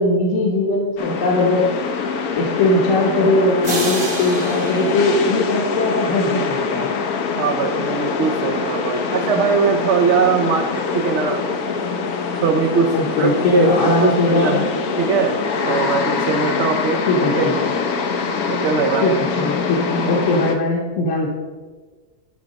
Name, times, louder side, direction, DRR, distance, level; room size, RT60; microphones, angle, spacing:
voice 1, 0.0-1.7 2.3-6.9 12.9-14.6 17.1-17.7 19.0-21.3, left 2 dB, 60° left, -2 dB, 1.3 m, -19 dB
sound 1, 1.0-20.6, left 4 dB, 80° left, 1.3 m, -24 dB
sound 2, 3.6-6.3, right 2 dB, 25° right, 0.6 m, -29 dB
voice 2, 7.4-11.4 12.4-15.4 15.7-17.5 18.5-19.2, right 5 dB, 60° right, 4 dB, 0.8 m, -21 dB
10.5 x 4.6 x 5.1 m, 1.4 s
omnidirectional pair, 1.6 m